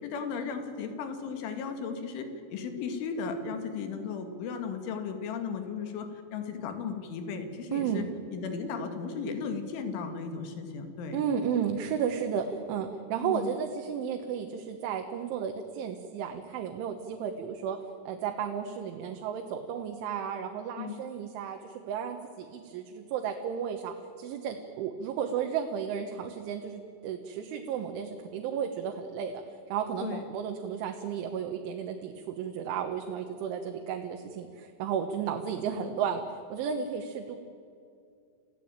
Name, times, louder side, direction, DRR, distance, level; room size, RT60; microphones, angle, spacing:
voice 1, 0.0-8.1 8.3-11.2 13.2-13.5 20.8-21.0 30.0-30.2 35.7-35.9, left 5 dB, 90° left, 7 dB, 4.5 m, -35 dB
voice 2, 7.7-8.1 11.1-17.8 18.1-29.3 29.7-36.2 36.5-37.4, right 8 dB, 85° right, 3 dB, 3.8 m, -33 dB
29.0 x 16.5 x 9.0 m, 2.4 s
omnidirectional pair, 5.3 m